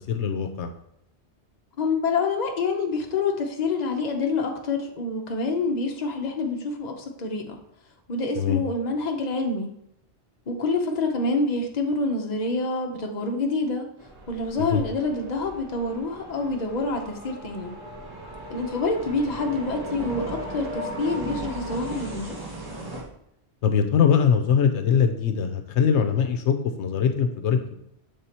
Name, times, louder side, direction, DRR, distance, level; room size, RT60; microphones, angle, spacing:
voice 1, 0.1-0.7 8.4-8.6 14.6-14.8 23.6-27.8, left 7 dB, 85° left, 7 dB, 0.9 m, -22 dB
voice 2, 1.8-7.6 8.1-9.7 10.5-13.9 14.3-17.7 18.5-22.4, left 3 dB, 40° left, 2 dB, 0.9 m, -27 dB
sound 1, 14.0-23.0, right 1 dB, 20° right, 1.0 m, -37 dB
6.8 x 3.6 x 4.2 m, 0.76 s
omnidirectional pair, 1.1 m